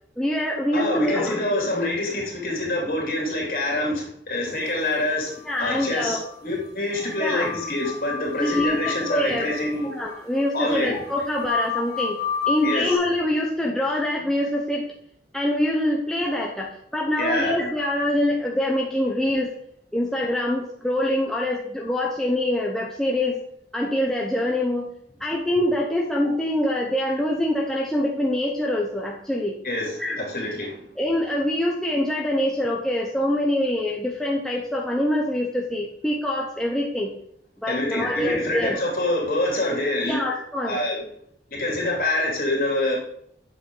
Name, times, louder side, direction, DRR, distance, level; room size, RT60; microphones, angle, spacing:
voice 1, 0.2-1.5 5.5-6.2 7.2-7.5 8.4-9.6 9.9-12.2 12.5-14.8 15.3-19.5 19.9-23.4 23.7-24.9 25.2-29.6 30.0-30.2 31.0-37.1 37.6-38.8 40.1-40.8, left 1 dB, 5° left, -2 dB, 0.8 m, -25 dB
voice 2, 0.7-10.0 10.5-10.9 12.6-12.9 17.2-17.5 29.6-30.9 37.7-40.3 40.6-41.0 41.5-43.0, left 1 dB, 50° left, -2 dB, 3.2 m, -26 dB
sound 1, 5.3-6.4 6.6-6.7 6.9-13.0, left 6 dB, 20° left, 2.4 m, -31 dB
8.5 x 6.9 x 3.9 m, 0.68 s
head